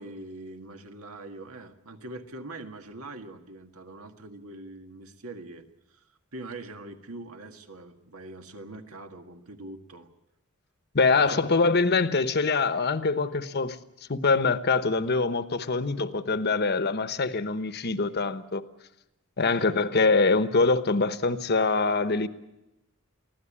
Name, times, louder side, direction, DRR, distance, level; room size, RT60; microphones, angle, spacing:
voice 1, 0.0-5.6 5.9-6.0 6.3-10.1 11.1-11.4 19.5-19.7, right 2 dB, 80° right, 1.8 m, -43 dB
voice 2, 10.9-13.8 14.1-18.6 19.4-22.3, left 4 dB, 50° left, 1.0 m, -24 dB
24.0 x 16.0 x 8.7 m
head